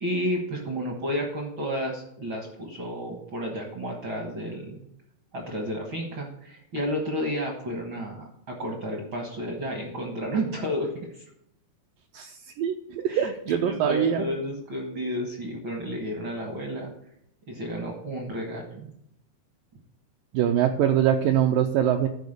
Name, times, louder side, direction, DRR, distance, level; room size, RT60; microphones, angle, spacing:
voice 1, 0.0-4.8 5.3-11.2 13.1-16.9 17.5-18.9, equal, 65° right, 1 dB, 1.2 m, -31 dB
voice 2, 12.1-14.2 20.3-22.1, right 9 dB, 80° right, 4 dB, 2.0 m, -23 dB
11.5 x 4.7 x 6.7 m, 0.76 s
omnidirectional pair, 4.5 m